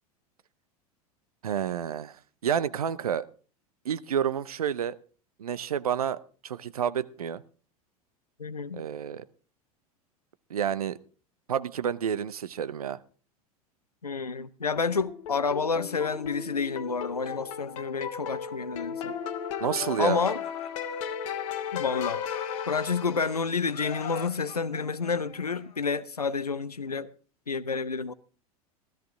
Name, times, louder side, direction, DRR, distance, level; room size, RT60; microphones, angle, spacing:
voice 1, 1.4-2.2 2.4-3.2 3.8-4.9 5.4-7.4 8.7-9.2 10.5-11.0 11.5-13.0 19.6-20.2, right 8 dB, 70° right, 0.7 m, -29 dB
voice 2, 8.4-8.8 14.0-19.1 20.0-20.4 21.7-22.2 22.7-27.1 27.5-28.1, left 5 dB, 85° left, 0.7 m, -29 dB
sound 1, 14.8-23.6, left 8 dB, 55° left, 1.3 m, -35 dB
Laughter, 19.8-21.5 21.8-23.3 23.7-26.0, left 8 dB, 35° left, 1.8 m, -43 dB
16.5 x 13.0 x 3.6 m
figure-of-eight pair, 85°, 19 cm